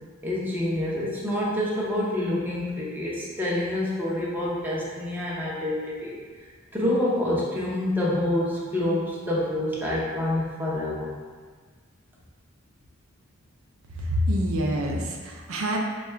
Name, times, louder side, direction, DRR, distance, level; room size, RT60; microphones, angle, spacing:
voice 1, 0.2-6.2 6.7-11.1, left 1 dB, 10° right, -7 dB, 0.6 m, -27 dB
voice 2, 14.0-15.8, equal, 70° right, 0 dB, 0.5 m, -26 dB
3.6 x 2.3 x 4.3 m, 1.5 s
head